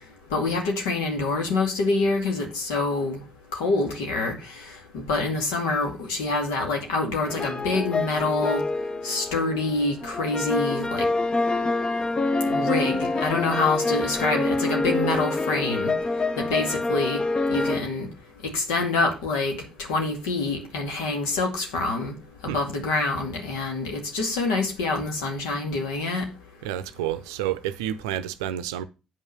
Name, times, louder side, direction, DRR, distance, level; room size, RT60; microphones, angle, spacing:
voice 1, 0.3-3.2 3.5-8.6 9.0-11.1 12.5-15.9 16.4-17.2 17.5-18.1 18.5-22.1 22.4-26.3, left 3 dB, 70° left, 2.2 m, -26 dB
sound 1, 7.3-17.8, left 2 dB, 30° left, 0.9 m, -26 dB
voice 2, 26.6-28.8, right 11 dB, 70° right, 0.6 m, -29 dB
8.8 x 5.6 x 5.7 m
figure-of-eight pair, 45°, 3 cm